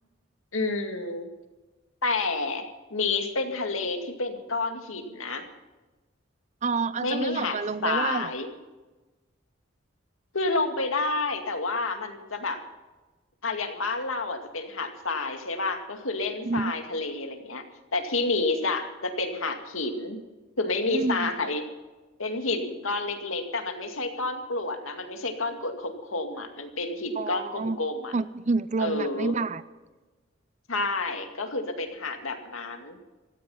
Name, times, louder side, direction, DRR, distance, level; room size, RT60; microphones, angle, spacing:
voice 1, 0.5-1.3 2.0-2.6 2.9-5.4 7.0-7.6 7.8-8.5 10.3-12.6 13.4-17.6 17.9-20.2 20.6-21.7 22.2-28.1 28.8-29.3 30.7-33.0, left 3 dB, 90° left, 5 dB, 2.2 m, -29 dB
voice 2, 6.6-8.3 16.5-16.7 20.9-21.3 27.2-27.8 28.1-29.6, right 4 dB, 35° right, 15 dB, 0.5 m, -28 dB
17.5 x 14.5 x 5.7 m, 1.2 s
head